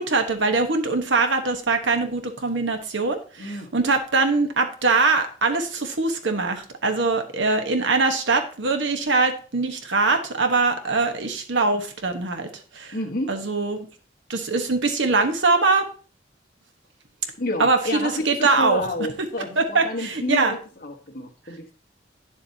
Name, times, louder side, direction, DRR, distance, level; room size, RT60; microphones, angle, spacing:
voice 1, 0.0-12.9 13.3-13.9 14.3-15.9 17.6-18.8 19.6-20.5, right 3 dB, 75° right, 6 dB, 1.2 m, -22 dB
voice 2, 3.4-3.7 12.9-13.4 17.4-21.7, left 1 dB, 50° left, 2 dB, 1.3 m, -30 dB
9.6 x 7.2 x 2.8 m, 0.39 s
head